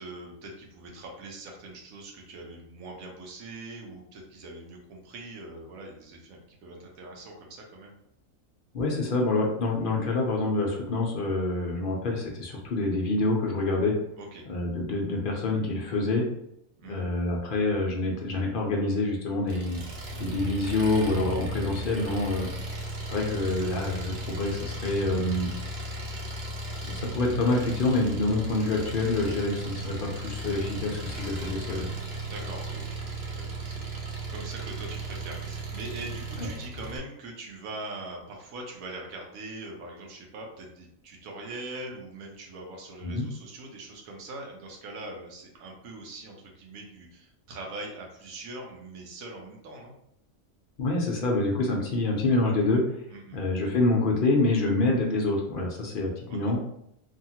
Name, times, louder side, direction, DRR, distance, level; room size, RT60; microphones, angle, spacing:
voice 1, 0.0-7.9 14.2-14.4 16.8-17.1 32.2-33.9 34.3-49.9 53.1-53.4 56.3-56.4, right 2 dB, 90° right, 0 dB, 1.1 m, -42 dB
voice 2, 8.7-13.9 14.5-16.2 16.8-19.8 20.2-22.5 23.1-25.5 26.8-31.9 36.4-36.5 43.0-43.2 50.8-52.8 53.3-56.6, left 2 dB, 60° left, 0 dB, 0.5 m, -26 dB
Engine, 19.5-37.0, right 2 dB, 60° right, 0.7 m, -36 dB
2.7 x 2.4 x 2.7 m, 0.75 s
omnidirectional pair, 1.4 m